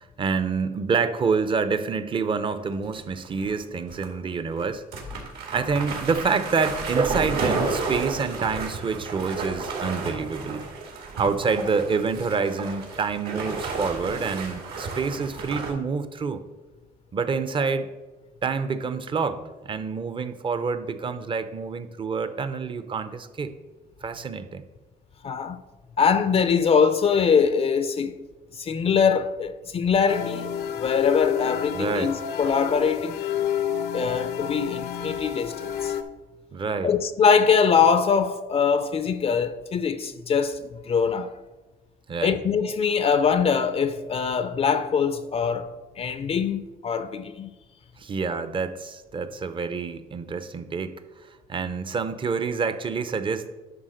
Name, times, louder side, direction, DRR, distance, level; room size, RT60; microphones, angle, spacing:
voice 1, 0.0-4.8 5.5-10.6 11.2-16.4 17.1-17.9 18.4-23.5 24.0-24.6 31.7-32.1 36.5-36.9 42.1-42.4 48.0-50.9 51.3-53.5, right 5 dB, 30° right, 0.7 m, -27 dB
sound 1, 2.8-3.6 3.9-4.1 4.6-4.7 4.9-15.7, right 3 dB, 70° right, 2.4 m, -32 dB
voice 2, 25.2-25.6 26.0-28.2 28.6-30.5 30.8-33.2 33.9-35.9 36.8-41.3 42.2-45.7 46.0-47.5, left 6 dB, 35° left, 0.5 m, -23 dB
sound 2, 30.1-36.0, left 9 dB, 70° left, 0.7 m, -29 dB
11.0 x 3.6 x 6.4 m
cardioid pair, 110°, 17 cm